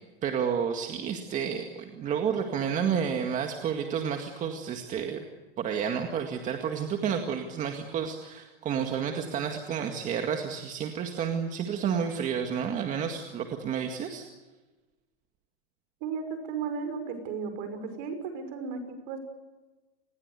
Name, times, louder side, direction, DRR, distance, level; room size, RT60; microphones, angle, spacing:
voice 1, 0.2-5.3 5.6-14.2, right 7 dB, 25° right, 4 dB, 2.0 m, -30 dB
voice 2, 16.0-19.2, right 5 dB, 50° right, 8 dB, 5.8 m, -35 dB
28.5 x 20.5 x 8.2 m, 1.2 s
supercardioid pair, 150°, 30 cm